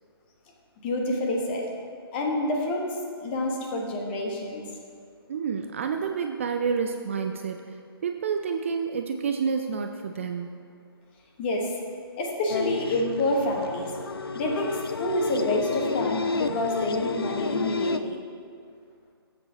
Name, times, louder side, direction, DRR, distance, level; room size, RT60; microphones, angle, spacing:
voice 1, 0.8-1.7 2.1-2.9 3.2-4.7 11.4-11.7 12.2-13.9 14.3-18.2, left 1 dB, 25° left, 0 dB, 1.3 m, -28 dB
voice 2, 5.3-7.8 8.0-10.5, right 6 dB, 30° right, 5 dB, 0.4 m, -29 dB
sound 1, 12.5-18.0, left 4 dB, 65° left, 0.5 m, -31 dB
16.5 x 7.8 x 2.9 m, 2.2 s
figure-of-eight pair, 140°, 13 cm